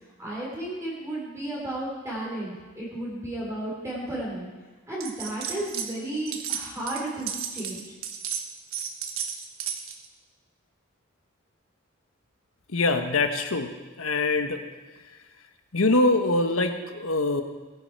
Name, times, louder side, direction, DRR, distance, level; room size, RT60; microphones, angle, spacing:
voice 1, 0.0-4.5 4.9-7.9, right 1 dB, 15° right, -5 dB, 3.6 m, -33 dB
sound 1, 5.0-5.9 6.2-10.1, right 8 dB, 85° right, 1.3 m, -33 dB
voice 2, 12.7-13.7 14.0-14.6 15.7-17.4, left 2 dB, 80° left, 6 dB, 1.3 m, -23 dB
19.5 x 10.5 x 4.7 m, 1.3 s
head